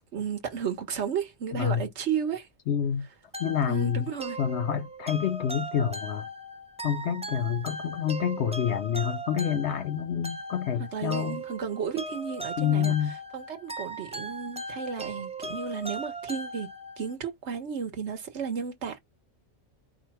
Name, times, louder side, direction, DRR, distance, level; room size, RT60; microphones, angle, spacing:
voice 1, 0.1-2.5 3.6-4.4 10.8-16.7 17.0-19.0, right 7 dB, 60° right, 1.4 m, -33 dB
voice 2, 1.5-1.8 2.7-3.1 3.4-4.1 4.4-6.3 6.8-11.4 12.6-13.1, left 8 dB, 65° left, 0.8 m, -28 dB
sound 1, 3.3-17.2, right 1 dB, 5° right, 0.6 m, -38 dB
5.0 x 2.3 x 4.2 m
omnidirectional pair, 1.4 m